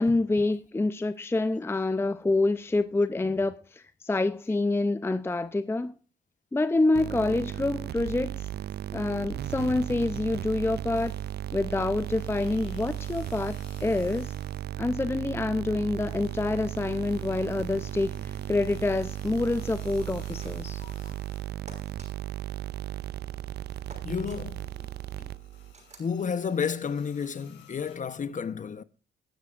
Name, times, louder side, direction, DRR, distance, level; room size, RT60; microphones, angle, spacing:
voice 1, 0.0-5.9 6.5-8.5 8.9-11.1 11.5-13.5 13.8-14.3 14.8-20.8, left 2 dB, 10° left, 0.6 m, -27 dB
sound 1, 6.9-25.7, right 13 dB, 55° right, 0.5 m, -36 dB
sound 2, 10.9-11.5 11.9-14.8 15.1-21.9 22.3-28.0, left 7 dB, 70° left, 4.4 m, -58 dB
sound 3, 20.2-20.8 21.7-22.1 23.9-24.4 25.7-26.1, right 3 dB, 35° right, 6.2 m, -50 dB
voice 2, 20.8-21.1 24.0-24.9 26.0-28.8, left 6 dB, 40° left, 1.0 m, -31 dB
21.0 x 9.7 x 2.5 m
cardioid pair, 90°, 20 cm